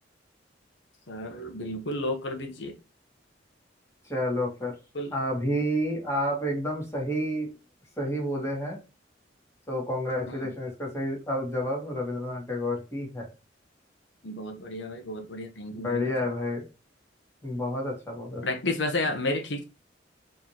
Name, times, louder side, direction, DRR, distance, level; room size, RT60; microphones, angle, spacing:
voice 1, 1.1-2.8 4.9-5.1 10.2-10.5 14.2-16.1 18.4-19.6, left 2 dB, 70° left, 0.9 m, -32 dB
voice 2, 4.1-4.7 5.1-7.5 8.0-8.8 9.7-13.3 15.8-16.6 17.4-18.4, equal, 15° left, 1.9 m, -30 dB
4.0 x 3.3 x 2.9 m
head